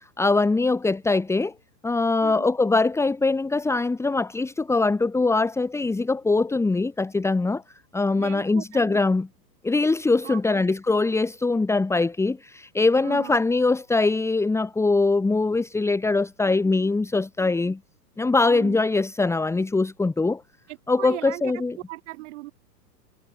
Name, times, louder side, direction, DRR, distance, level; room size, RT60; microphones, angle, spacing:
voice 1, 0.0-1.5 1.8-7.6 7.9-9.3 9.6-17.8 18.2-20.4 20.9-21.8, left 3 dB, 5° left, 3.0 m, -22 dB
voice 2, 8.2-9.0 10.2-10.6 13.0-13.4 18.5-18.8 20.7-21.4 21.9-22.5, right 20 dB, 45° right, 5.0 m, -38 dB
hypercardioid pair, 145°, 49 cm